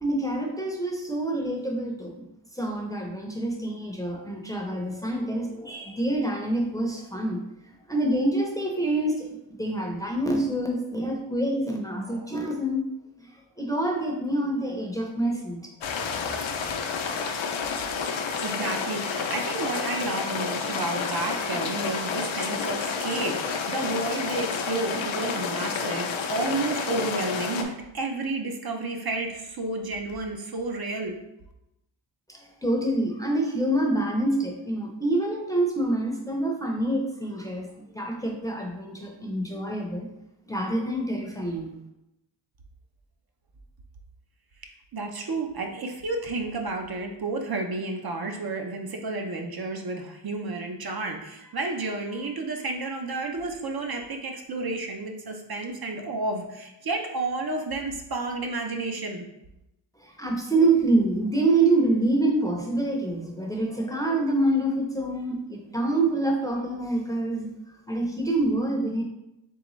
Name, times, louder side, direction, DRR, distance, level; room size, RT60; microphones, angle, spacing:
voice 1, 0.0-2.2 2.5-7.4 7.9-12.8 13.6-15.6 32.3-40.1 40.5-41.7 60.2-67.5 67.9-69.0, right 2 dB, 10° left, 0 dB, 0.5 m, -26 dB
sound 1, 15.8-27.6, left 5 dB, 85° left, 0.6 m, -30 dB
voice 2, 18.4-31.2 44.9-59.3, right 3 dB, 55° right, 3 dB, 0.6 m, -31 dB
3.8 x 3.3 x 3.0 m, 0.88 s
wide cardioid pair, 90°, 46 cm